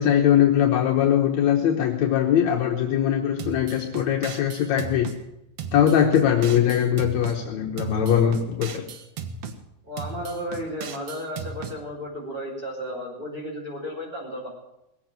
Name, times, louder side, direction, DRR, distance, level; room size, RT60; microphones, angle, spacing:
voice 1, 0.0-5.1 5.7-8.9, left 9 dB, 75° left, 2 dB, 2.3 m, -21 dB
sound 1, 3.4-5.2 5.6-7.4 7.8-9.6 10.0-11.8, right 5 dB, 60° right, 2.1 m, -36 dB
voice 2, 9.8-14.5, equal, 15° right, -5 dB, 5.5 m, -33 dB
19.5 x 7.9 x 9.1 m, 0.88 s
omnidirectional pair, 3.3 m